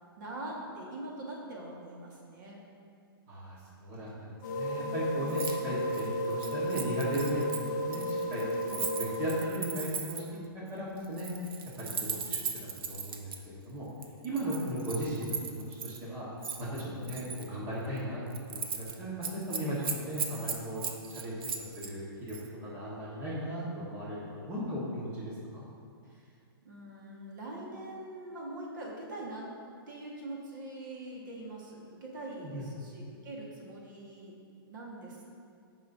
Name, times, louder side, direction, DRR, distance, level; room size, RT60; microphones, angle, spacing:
voice 1, 0.2-2.6 8.6-8.8 12.0-12.5 14.3-14.7 26.0-26.3 26.6-29.5 29.9-34.4 34.7-35.3, right 1 dB, 50° right, -3 dB, 1.6 m, -43 dB
voice 2, 3.3-10.2 10.5-11.3 11.8-11.9 12.3-13.9 14.2-16.3 16.6-18.2 18.5-20.8 21.1-21.4 21.7-22.4 22.6-25.6 32.4-32.6, equal, 20° right, -7 dB, 1.4 m, -36 dB
sound 1, 4.4-9.5, left 1 dB, 50° left, 0.7 m, -33 dB
Keys jangling, 5.3-5.6 5.8-10.4 11.0-13.4 14.0-16.0 16.4-17.5 17.9-18.0 18.3-18.9 19.2-21.9 22.3-22.5, right 6 dB, 70° right, 0.9 m, -38 dB
14.5 x 5.6 x 2.7 m, 2.4 s
hypercardioid pair, 165°, 13 cm